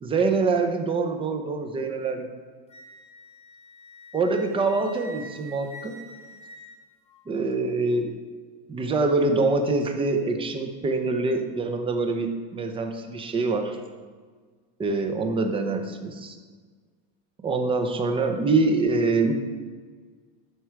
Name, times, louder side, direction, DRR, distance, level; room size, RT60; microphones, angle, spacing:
voice 1, 0.0-2.3 4.1-6.0 7.3-8.1 8.7-13.8 14.8-16.4 17.4-19.3, right 3 dB, 15° right, 5 dB, 0.7 m, -25 dB
Wind instrument woodwind instrument, 2.7-7.3, equal, 20° left, 0.9 m, -46 dB
12.0 x 4.9 x 4.6 m, 1.5 s
cardioid pair, 150°, 30 cm